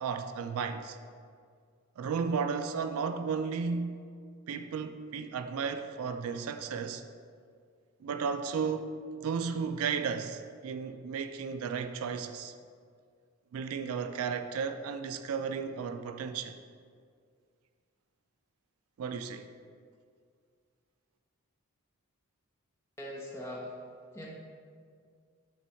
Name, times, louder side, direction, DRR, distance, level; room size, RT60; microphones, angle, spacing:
voice 1, 0.0-1.0 2.0-4.0 4.5-7.0 8.0-8.9 9.2-12.5 13.5-16.6 19.0-19.5, right 6 dB, 75° right, 0.3 m, -34 dB
voice 2, 23.0-23.7 24.1-24.3, left 1 dB, 10° left, 0.9 m, -40 dB
7.0 x 3.5 x 4.5 m
head